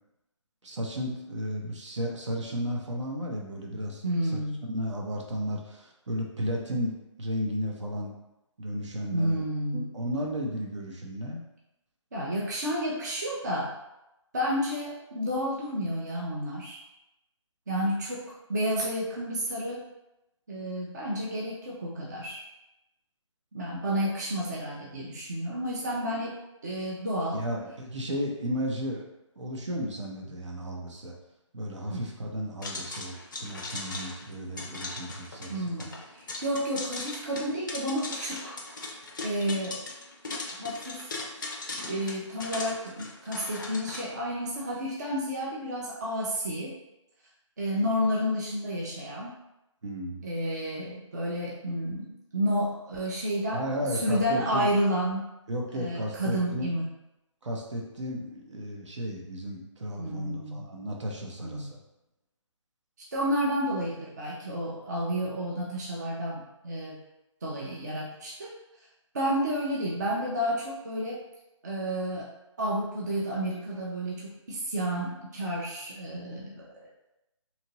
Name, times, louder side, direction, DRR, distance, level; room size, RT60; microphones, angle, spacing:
voice 1, 0.6-4.0 4.7-8.1 8.6-9.4 9.7-11.4 27.3-29.0 29.4-31.1 31.5-35.6 35.9-36.0 49.8-50.2 53.5-54.7 55.5-56.7 57.4-61.8, equal, 65° right, 0 dB, 0.8 m, -34 dB
voice 2, 4.0-4.6 9.1-9.9 12.1-13.7 14.3-16.8 17.7-19.9 20.5-22.4 23.5-27.4 31.9-32.0 35.5-38.6 39.2-39.8 40.5-41.1 41.9-46.8 47.6-49.4 50.2-55.3 55.7-56.9 60.0-60.7 61.4-61.7 63.1-67.0 67.4-68.5 69.1-71.2 71.6-72.3 72.6-76.9, equal, 35° right, -4 dB, 0.5 m, -31 dB
sound 1, 32.6-44.0, left 3 dB, 40° left, 0.4 m, -39 dB
2.9 x 2.5 x 2.8 m, 0.91 s
hypercardioid pair, 165°, 16 cm